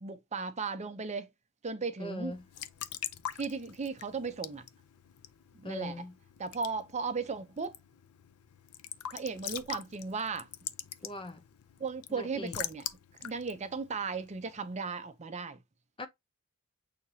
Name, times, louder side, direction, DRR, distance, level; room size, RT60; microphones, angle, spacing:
voice 1, 0.0-1.3 1.6-2.3 3.3-4.6 5.5-5.9 6.4-7.8 9.1-10.5 11.8-12.8 13.2-15.6, right 4 dB, 30° right, 0.6 m, -36 dB
voice 2, 2.0-2.4 5.6-6.1 11.0-11.4 12.1-12.6 16.0-16.1, left 1 dB, 25° left, 0.7 m, -40 dB
Raindrop / Drip / Trickle dribble, 2.3-14.8, left 11 dB, 80° left, 0.5 m, -44 dB
6.5 x 2.8 x 2.7 m
head